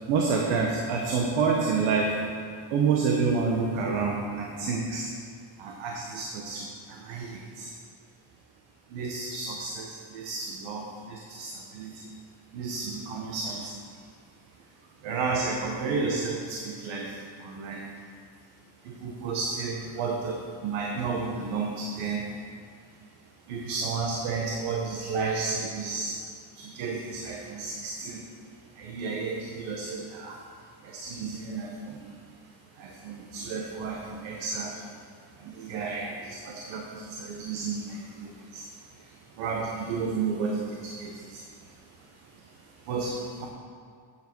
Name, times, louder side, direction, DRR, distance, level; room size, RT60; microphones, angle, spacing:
voice 1, 0.1-2.2 2.7-5.1 5.6-7.7 8.9-12.1 12.5-13.8 15.0-17.8 18.8-22.3 23.5-26.2 26.5-28.3 28.7-30.4 30.8-32.2 32.7-35.0 35.3-43.5, right 4 dB, 90° right, 0 dB, 1.3 m, -31 dB
9.0 x 7.5 x 6.0 m, 2.1 s
cardioid pair, 165°, 45 cm